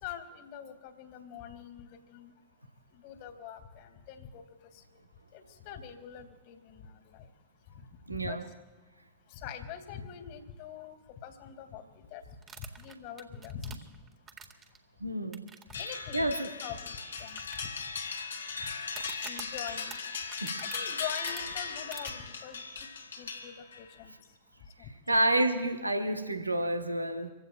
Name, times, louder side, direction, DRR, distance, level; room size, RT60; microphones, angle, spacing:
voice 1, 0.0-2.3 2.9-4.4 4.7-4.8 5.3-7.3 7.7-7.9 8.2-8.4 9.3-12.2 12.6-14.0 15.7-16.3 16.6-17.7 18.6-18.7 19.2-20.0 20.6-22.9 23.2-24.1 24.8-24.9, left 8 dB, 50° left, 6 dB, 2.5 m, -44 dB
voice 2, 8.1-8.4 15.0-15.4 15.9-16.5 20.4-20.6 25.1-27.3, right 1 dB, 85° right, 6 dB, 1.2 m, -29 dB
sound 1, 12.4-14.8 15.3-15.7 16.0-16.1 16.6-16.7 17.4-18.1 18.9-21.4 21.9-22.1, right 6 dB, 25° right, 2.0 m, -47 dB
sound 2, 15.7-23.9, left 5 dB, 75° left, 2.6 m, -38 dB
27.0 x 16.0 x 2.4 m, 1.3 s
figure-of-eight pair, 90°, 0 cm